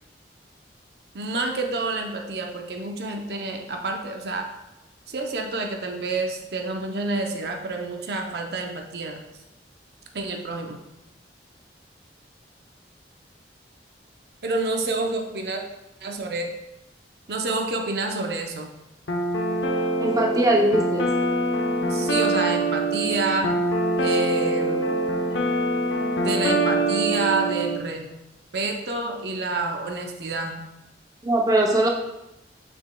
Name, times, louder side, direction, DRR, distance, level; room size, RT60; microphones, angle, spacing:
voice 1, 1.1-4.5 5.1-9.2 10.1-10.8 14.4-15.6 16.0-16.5 17.3-18.7 21.9-23.5 24.0-24.9 26.2-28.1 28.5-30.6, right 3 dB, 60° right, 2 dB, 0.6 m, -28 dB
sound 1, 19.1-27.8, right 1 dB, 90° left, 0.8 m, -24 dB
voice 2, 20.0-21.1 31.2-31.9, right 1 dB, 20° right, -1 dB, 0.7 m, -20 dB
7.0 x 6.2 x 2.2 m, 0.91 s
head